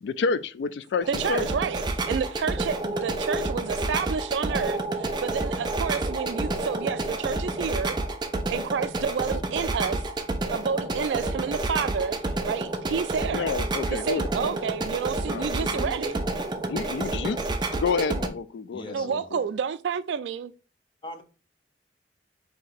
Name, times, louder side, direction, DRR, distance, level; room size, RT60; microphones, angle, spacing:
voice 1, 0.0-1.5 13.3-14.6 15.3-15.7 16.7-19.4, left 5 dB, 80° left, 0.3 m, -30 dB
sound 1, 1.0-18.3, right 2 dB, 25° right, 0.5 m, -29 dB
voice 2, 1.1-8.0 8.5-10.0 10.4-12.2 12.5-13.6 13.9-16.1 18.9-20.5, right 6 dB, 90° right, 0.3 m, -30 dB
voice 3, 15.6-16.2 18.7-19.2 21.0-21.2, left 2 dB, 30° left, 0.7 m, -40 dB
4.3 x 2.8 x 3.9 m
head